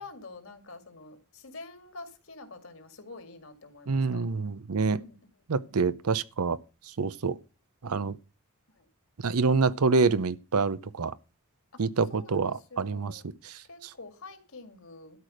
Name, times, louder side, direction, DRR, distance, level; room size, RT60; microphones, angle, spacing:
voice 1, 0.0-4.3 4.9-5.2 5.6-5.8 8.7-8.9 11.7-11.8 12.1-13.3 13.7-15.2, left 3 dB, 65° left, 2.1 m, -47 dB
voice 2, 3.9-5.0 5.5-6.6 7.0-7.4 7.8-8.2 9.2-11.1 11.8-13.1 13.4-13.5, right 4 dB, 80° right, 0.6 m, -26 dB
12.5 x 5.0 x 7.7 m
head